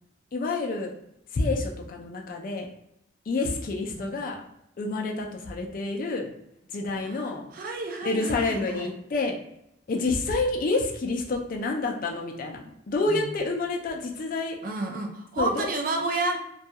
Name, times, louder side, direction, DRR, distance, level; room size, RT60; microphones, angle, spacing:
voice 1, 0.3-0.9 1.3-2.7 3.3-4.4 4.8-6.3 6.7-7.5 8.0-9.4 9.9-12.6 12.9-14.6 15.4-15.7, left 3 dB, 45° left, 2 dB, 0.4 m, -28 dB
voice 2, 6.9-8.9 13.1-13.4 14.6-16.4, right 2 dB, 45° right, 3 dB, 0.4 m, -31 dB
2.3 x 2.2 x 2.7 m, 0.78 s
head